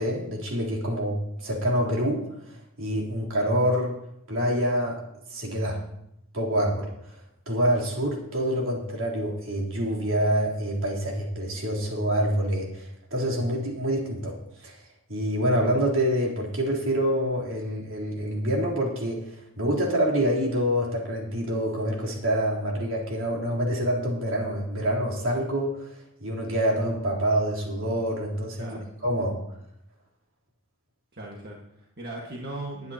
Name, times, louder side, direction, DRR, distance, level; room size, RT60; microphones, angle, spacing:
voice 1, 0.0-4.0 4.3-5.0 5.3-5.8 6.3-7.2 7.5-14.8 15.1-29.4, equal, 70° right, -3 dB, 3.6 m, -26 dB
voice 2, 28.6-28.9 31.1-32.9, right 2 dB, 50° right, -3 dB, 1.7 m, -38 dB
20.5 x 9.5 x 2.9 m, 0.79 s
head